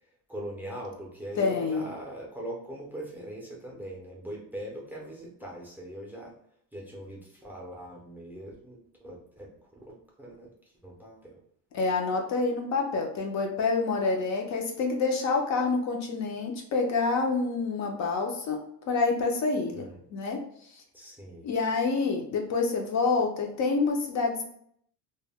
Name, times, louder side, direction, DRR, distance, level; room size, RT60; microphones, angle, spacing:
voice 1, 0.3-6.3 6.7-10.5 10.8-11.4 19.7-20.0 20.9-21.5, right 1 dB, 5° right, -2 dB, 0.5 m, -41 dB
voice 2, 1.4-1.9 11.7-18.6 18.9-20.4 21.4-24.4, left 4 dB, 45° left, 1 dB, 0.5 m, -27 dB
2.2 x 2.0 x 3.3 m, 0.68 s
cardioid pair, 135°, 38 cm